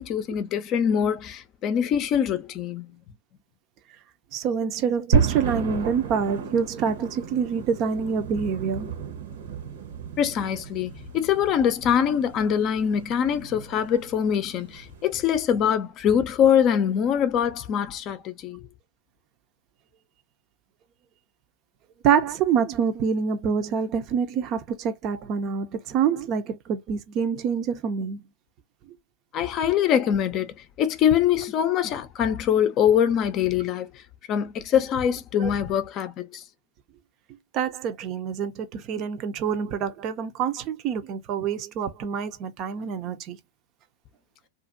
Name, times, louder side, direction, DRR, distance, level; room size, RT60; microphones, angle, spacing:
voice 1, 0.0-2.9 10.2-18.6 29.3-33.9 34.3-36.4, left 9 dB, 40° left, 0.6 m, -23 dB
voice 2, 4.3-8.9 22.0-28.2 35.4-35.5 37.5-43.4, right 7 dB, 40° right, 0.6 m, -26 dB
sound 1, 5.1-15.4, right 6 dB, 75° right, 0.9 m, -32 dB
2.6 x 2.5 x 2.5 m
hypercardioid pair, 120°, 0 cm